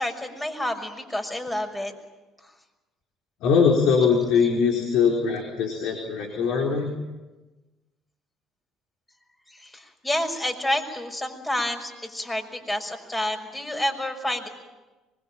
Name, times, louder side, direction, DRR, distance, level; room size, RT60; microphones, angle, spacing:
voice 1, 0.0-1.9 9.5-14.5, left 1 dB, 15° left, 4 dB, 6.0 m, -29 dB
voice 2, 3.4-6.9, left 6 dB, 70° left, 1 dB, 4.2 m, -21 dB
24.5 x 22.0 x 8.9 m, 1.2 s
supercardioid pair, 70°, 0 cm